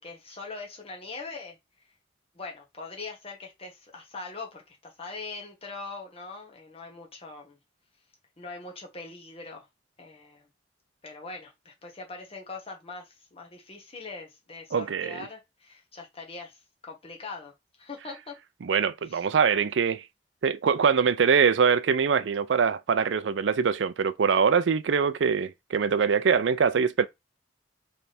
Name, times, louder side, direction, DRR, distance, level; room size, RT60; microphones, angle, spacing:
voice 1, 0.0-1.6 1.8-1.9 2.3-7.6 8.4-9.7 10.0-10.5 11.0-18.4 19.1-19.2, left 3 dB, 35° left, 1.4 m, -42 dB
voice 2, 14.7-15.2 18.6-20.0 20.4-27.1, right 6 dB, 85° right, 0.4 m, -23 dB
3.4 x 3.3 x 4.2 m
head